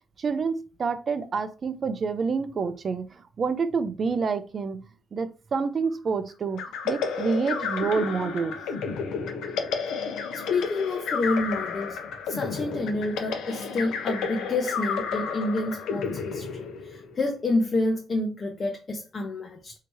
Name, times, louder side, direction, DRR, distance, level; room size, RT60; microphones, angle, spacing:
voice 1, 0.2-4.8 5.1-8.6, right 5 dB, 45° right, 0.5 m, -28 dB
sound 1, 6.6-17.2, left 5 dB, 90° left, 0.6 m, -31 dB
voice 2, 10.3-12.0 12.3-19.7, left 2 dB, 40° left, 0.6 m, -28 dB
3.4 x 2.8 x 3.0 m
cardioid pair, 90°, 0 cm